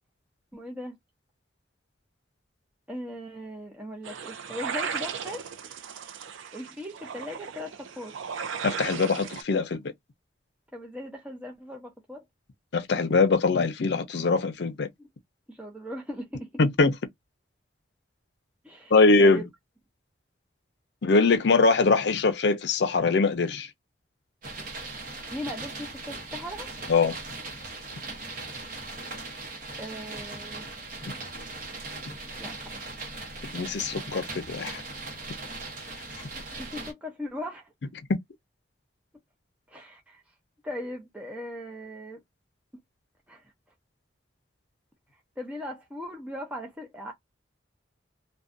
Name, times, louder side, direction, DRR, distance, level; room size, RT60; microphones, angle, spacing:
voice 1, 0.5-1.0 2.9-5.5 6.5-8.2 10.7-12.2 15.0-15.1 15.5-16.5 18.6-18.9 19.2-19.4 25.3-26.7 29.8-30.7 32.4-32.8 36.6-37.7 39.7-40.2 40.6-42.2 43.3-43.4 45.4-47.1, left 1 dB, 5° right, 0.5 m, -38 dB
sound 1, 4.0-9.4, right 6 dB, 85° right, 0.4 m, -36 dB
voice 2, 8.6-9.8 12.7-14.9 16.6-16.9 18.9-19.4 21.0-23.7 26.9-27.1 33.5-34.8, left 3 dB, 65° left, 0.5 m, -22 dB
sound 2, 24.4-36.9, right 3 dB, 45° right, 0.8 m, -39 dB
2.5 x 2.2 x 2.5 m
head